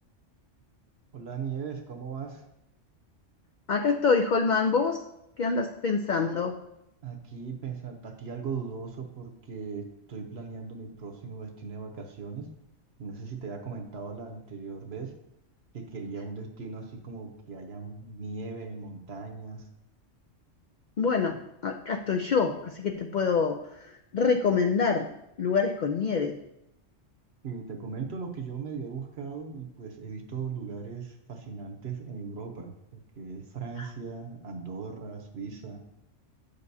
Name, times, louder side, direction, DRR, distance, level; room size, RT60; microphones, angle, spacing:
voice 1, 1.1-2.4 7.0-12.5 13.0-15.1 15.7-19.7 27.4-35.8, right 5 dB, 60° right, 4 dB, 1.1 m, -38 dB
voice 2, 3.7-5.0 5.4-6.6 21.0-21.4 21.6-25.1 25.4-26.4 33.8-33.9, left 5 dB, 65° left, 5 dB, 0.4 m, -26 dB
8.5 x 6.6 x 2.7 m, 0.82 s
omnidirectional pair, 1.3 m